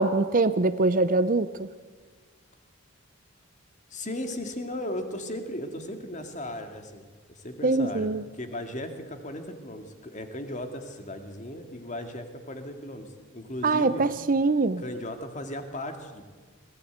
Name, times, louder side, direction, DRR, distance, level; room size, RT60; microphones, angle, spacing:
voice 1, 0.0-1.7 7.6-8.2 13.6-14.8, right 3 dB, 40° right, 14 dB, 0.6 m, -23 dB
voice 2, 3.9-14.1 14.8-16.3, left 1 dB, 35° left, 6 dB, 2.2 m, -36 dB
22.5 x 17.0 x 8.1 m, 1.4 s
head